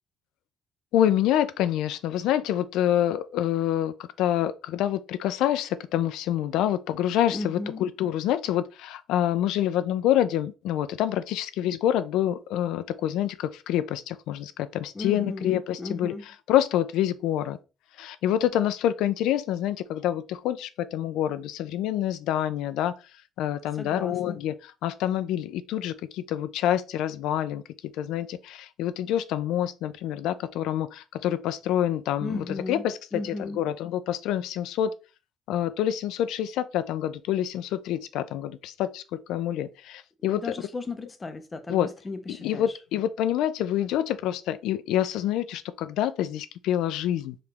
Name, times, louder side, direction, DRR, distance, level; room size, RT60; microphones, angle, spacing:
voice 1, 0.9-16.1 16.5-17.6 18.0-22.9 23.4-27.6 28.0-34.9 35.5-39.0 39.3-40.5 41.7-41.9 42.3-47.4, left 11 dB, 80° left, 0.4 m, -27 dB
voice 2, 7.3-7.9 14.9-16.2 23.7-24.4 32.2-32.8 33.1-33.6 40.2-42.8, left 3 dB, 20° left, 0.5 m, -35 dB
4.9 x 3.0 x 3.4 m
cardioid pair, 160°, 0 cm